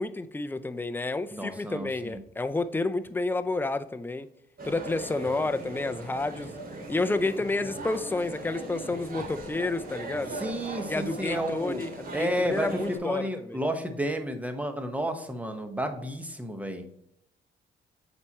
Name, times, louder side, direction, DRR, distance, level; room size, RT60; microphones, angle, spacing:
voice 1, 0.0-4.3 4.6-6.5 6.9-10.4 10.9-13.6, left 2 dB, 10° left, 10 dB, 0.5 m, -30 dB
voice 2, 1.3-2.2 10.3-11.8 12.1-12.7 13.0-16.9, equal, 5° right, 6 dB, 1.1 m, -31 dB
sound 1, 4.6-13.0, right 2 dB, 45° right, 2.3 m, -39 dB
8.1 x 4.4 x 2.9 m, 0.78 s
cardioid pair, 90°, 20 cm